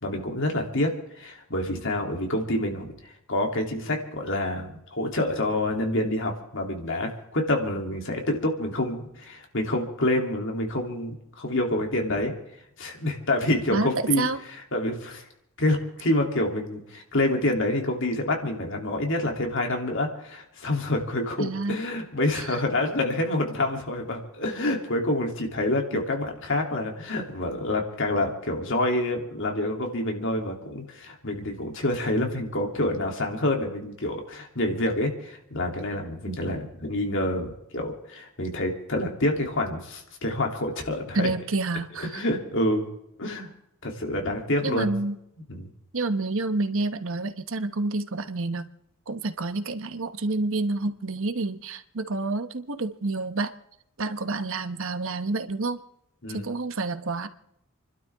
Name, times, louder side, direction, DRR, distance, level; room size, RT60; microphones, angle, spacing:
voice 1, 0.0-2.9 3.3-12.3 12.8-14.3 14.7-15.2 15.6-41.3 42.0-42.9 43.2-43.5 43.8-44.9 45.5-45.7 56.2-56.5, left 1 dB, 65° left, 2 dB, 3.0 m, -27 dB
voice 2, 13.7-14.4 21.4-21.8 22.3-22.6 36.2-36.4 41.1-42.2 44.6-45.2 45.9-48.7 49.1-53.5 54.0-55.8 56.3-57.3, right 3 dB, 65° right, 10 dB, 1.1 m, -28 dB
29.5 x 12.0 x 3.6 m, 0.78 s
head